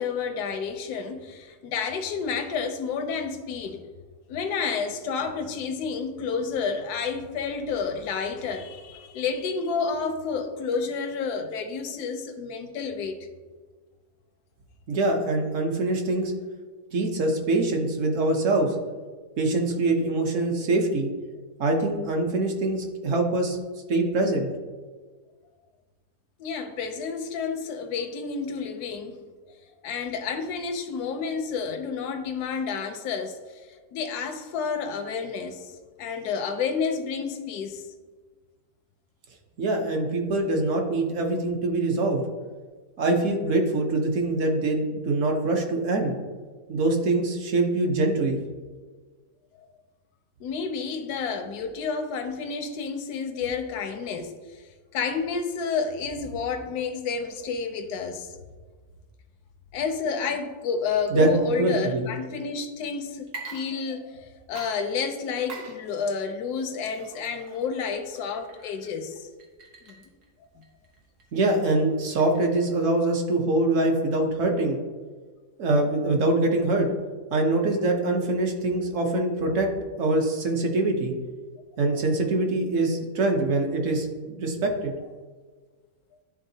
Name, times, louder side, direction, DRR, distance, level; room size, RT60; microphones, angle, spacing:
voice 1, 0.0-3.8 4.3-13.3 26.4-29.2 29.8-37.8 50.4-58.3 59.7-69.3 69.9-70.0 70.6-70.7, left 5 dB, 85° left, 6 dB, 1.2 m, -30 dB
voice 2, 14.9-16.3 16.9-18.8 19.4-21.1 21.6-23.6 23.9-24.5 39.6-42.2 43.0-46.1 46.7-48.4 61.1-61.3 61.6-62.0 71.3-74.8 75.6-76.9 77.3-79.7 80.0-81.1 81.8-84.9, right 2 dB, 60° right, 2 dB, 1.1 m, -24 dB
Water / Liquid, 63.2-64.2 64.5-72.8, right 4 dB, 85° right, 1.6 m, -46 dB
11.0 x 3.7 x 2.7 m, 1.4 s
omnidirectional pair, 1.6 m